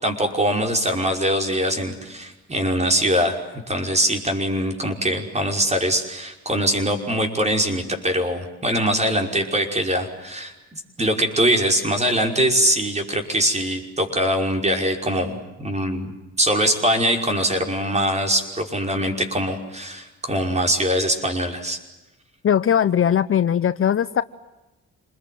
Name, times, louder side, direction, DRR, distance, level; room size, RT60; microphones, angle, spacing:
voice 1, 0.0-16.1 16.4-21.8, equal, 20° right, 4 dB, 5.5 m, -22 dB
voice 2, 22.4-24.2, left 9 dB, 45° left, 14 dB, 0.9 m, -19 dB
28.0 x 21.0 x 9.4 m, 1.0 s
cardioid pair, 90°, 30 cm